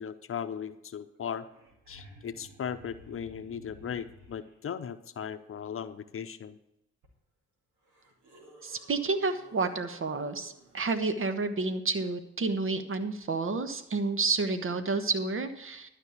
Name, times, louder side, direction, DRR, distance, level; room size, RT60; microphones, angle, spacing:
voice 1, 0.0-1.4 1.9-6.6, left 8 dB, 45° left, 11 dB, 0.8 m, -37 dB
sound 1, 1.1-1.2 1.4-4.5 7.0-7.1 7.8-10.9 13.4-13.5, equal, 75° right, 2.5 m, -54 dB
voice 2, 8.6-15.9, right 3 dB, 45° right, 9 dB, 1.3 m, -30 dB
12.0 x 5.4 x 8.4 m, 0.83 s
hypercardioid pair, 40°, 30 cm